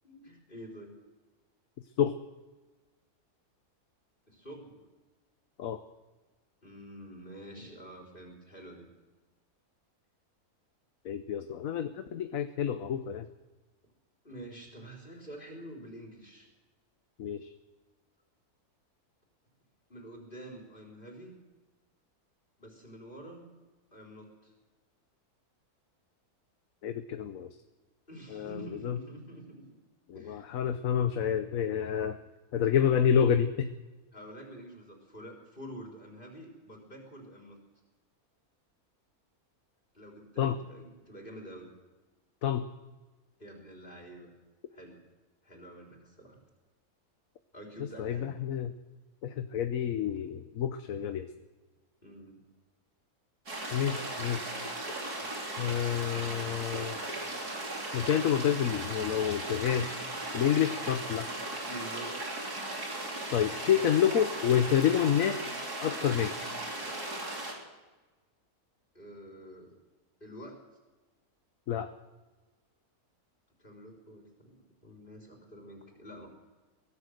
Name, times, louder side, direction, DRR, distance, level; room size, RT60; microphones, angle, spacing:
voice 1, 0.0-0.9 4.3-4.9 6.6-8.9 14.2-16.5 19.9-21.3 22.6-23.5 23.9-24.5 28.1-29.6 30.1-30.5 34.1-37.6 39.9-41.7 43.4-44.3 44.7-45.0 45.4-46.4 47.5-48.3 52.0-52.4 61.7-62.2 68.9-69.7 70.2-70.6 73.6-76.3, right 1 dB, 35° left, 0 dB, 4.2 m, -47 dB
voice 2, 11.0-13.3 17.2-17.5 26.8-27.5 28.3-29.0 30.1-32.2 32.5-33.7 40.4-40.6 42.4-42.7 48.0-48.7 49.2-51.3 53.7-54.5 55.6-57.0 57.9-60.0 60.3-61.3 63.3-65.4 65.8-66.5 71.7-71.9, left 9 dB, 65° left, 8 dB, 1.2 m, -28 dB
sound 1, 53.5-67.5, right 2 dB, 90° right, 4.2 m, -37 dB
23.5 x 17.5 x 6.6 m, 1.2 s
omnidirectional pair, 1.6 m